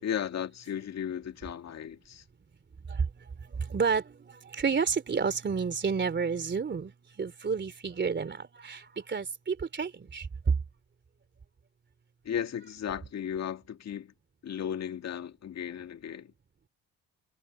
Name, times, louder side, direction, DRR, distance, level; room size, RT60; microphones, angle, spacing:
voice 1, 0.0-2.2 12.2-14.1 14.4-16.3, left 9 dB, 60° left, 2.0 m, -35 dB
voice 2, 3.7-4.1 4.5-6.9 7.2-8.8 9.1-10.3, right 5 dB, 35° right, 3.3 m, -30 dB
cardioid pair, 90°, 30 cm